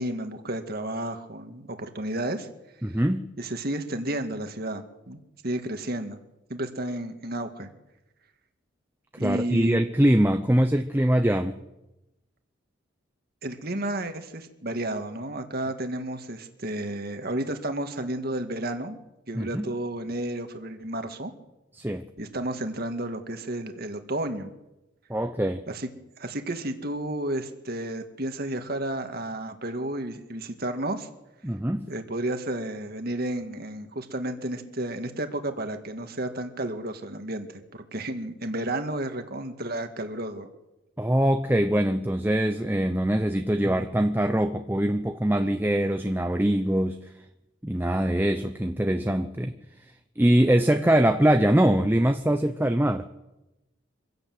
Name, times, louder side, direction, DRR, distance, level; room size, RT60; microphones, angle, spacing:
voice 1, 0.0-2.5 2.9-3.0 3.4-5.2 5.4-6.2 6.5-7.7 9.2-9.8 13.4-19.0 19.3-21.3 22.2-24.5 25.7-25.9 26.2-31.1 31.9-40.5, right 1 dB, 45° right, 7 dB, 2.0 m, -32 dB
voice 2, 2.8-3.2 9.1-11.6 19.3-19.7 21.8-22.0 25.1-25.6 31.4-31.9 41.0-47.0 47.6-49.5 50.2-53.0, right 1 dB, 10° right, 7 dB, 0.7 m, -23 dB
25.0 x 16.5 x 7.9 m, 0.96 s
head